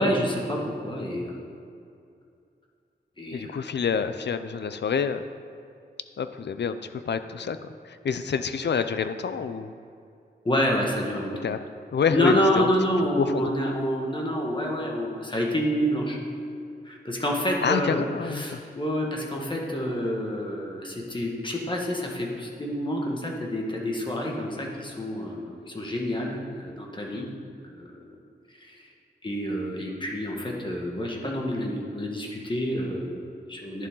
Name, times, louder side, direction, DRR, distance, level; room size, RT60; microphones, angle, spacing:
voice 1, 0.0-1.4 3.2-3.5 10.4-11.3 12.1-16.2 16.8-27.3 27.7-27.9 28.6-28.8 29.2-33.9, equal, 25° left, -1 dB, 1.7 m, -28 dB
voice 2, 3.3-5.2 6.2-7.6 7.8-9.7 11.4-11.6 11.9-12.7 13.2-13.4 17.6-18.6 27.1-27.3, left 6 dB, 75° left, 11 dB, 0.5 m, -27 dB
11.0 x 11.0 x 3.8 m, 2.5 s
wide cardioid pair, 125°, 18 cm